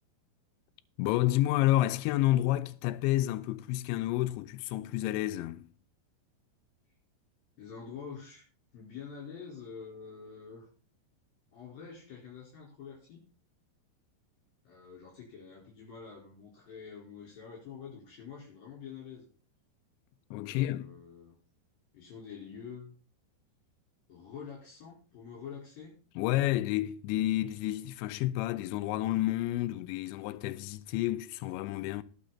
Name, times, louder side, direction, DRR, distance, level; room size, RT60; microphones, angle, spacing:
voice 1, 1.0-5.7 20.3-20.9 26.2-32.0, left 15 dB, 85° left, 2.9 m, -30 dB
voice 2, 7.6-8.5 8.7-10.7 11.5-13.3 14.6-19.3 20.4-21.3 21.9-22.9 24.1-26.0, left 6 dB, 55° left, 5.9 m, -46 dB
19.0 x 6.6 x 4.1 m
omnidirectional pair, 5.3 m